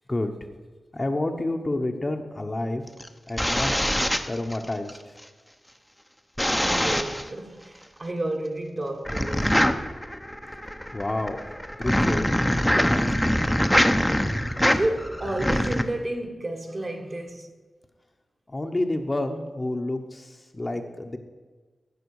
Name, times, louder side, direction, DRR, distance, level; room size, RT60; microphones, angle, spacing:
voice 1, 0.9-2.8 3.3-3.7 4.3-5.1 10.9-11.4 11.8-12.3 12.9-13.3 18.5-21.2, left 2 dB, 30° left, 0.9 m, -29 dB
sound 1, 2.9-5.0 6.4-7.3 9.0-15.8, equal, 5° left, 0.8 m, -24 dB
voice 2, 6.6-9.7 14.6-17.5, right 1 dB, 40° right, 1.4 m, -31 dB
14.5 x 6.0 x 4.8 m
cardioid pair, 60°, 0 cm